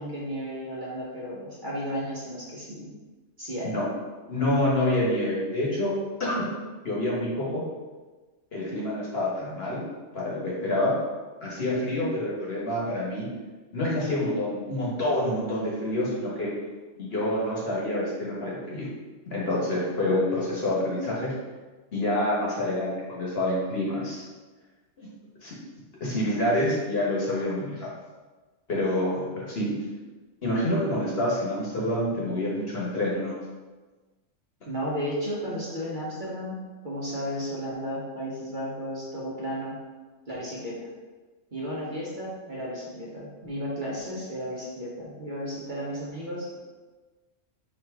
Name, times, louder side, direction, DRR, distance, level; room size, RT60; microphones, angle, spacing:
voice 1, 0.0-2.9 3.4-3.8 29.7-29.8 34.7-39.8 40.3-40.9 41.5-46.6, equal, 40° right, -6 dB, 1.0 m, -34 dB
voice 2, 4.3-5.9 6.2-6.4 6.8-7.6 8.5-9.8 10.1-10.9 11.4-13.3 13.7-16.5 17.0-18.9 19.3-21.3 21.9-24.2 25.0-25.1 25.4-25.5 26.0-27.9 28.7-29.7 30.4-33.4, left 1 dB, 50° left, -5 dB, 1.3 m, -27 dB
4.8 x 2.9 x 3.5 m, 1.3 s
omnidirectional pair, 1.4 m